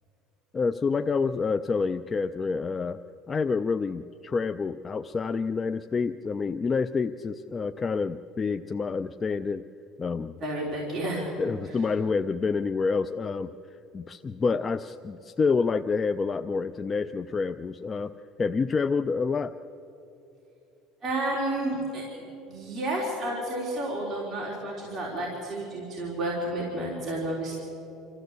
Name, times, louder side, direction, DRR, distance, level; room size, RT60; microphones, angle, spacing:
voice 1, 0.5-3.0 3.3-9.6 10.0-10.4 11.4-13.5 13.9-18.1 18.4-19.5, left 4 dB, 20° left, 9 dB, 0.4 m, -28 dB
voice 2, 10.4-11.3 21.0-27.6, right 1 dB, 25° right, -4 dB, 3.7 m, -31 dB
26.0 x 14.0 x 8.1 m, 3.0 s
cardioid pair, 155°, 0 cm